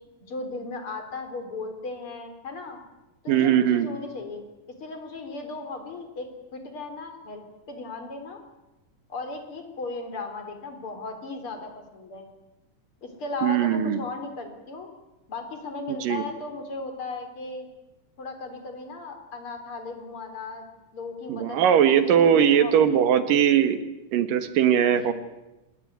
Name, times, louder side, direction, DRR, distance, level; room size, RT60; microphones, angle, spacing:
voice 1, 0.3-2.8 3.2-4.4 4.8-8.4 9.1-12.3 13.0-14.9 15.3-17.7 18.2-20.7 20.9-23.1 24.9-25.1, left 3 dB, 40° left, 6 dB, 4.5 m, -36 dB
voice 2, 3.3-3.9 13.4-14.0 16.0-16.2 21.3-23.8 24.1-25.1, right 9 dB, 80° right, 10 dB, 3.2 m, -20 dB
27.0 x 20.5 x 9.4 m, 1.0 s
omnidirectional pair, 3.8 m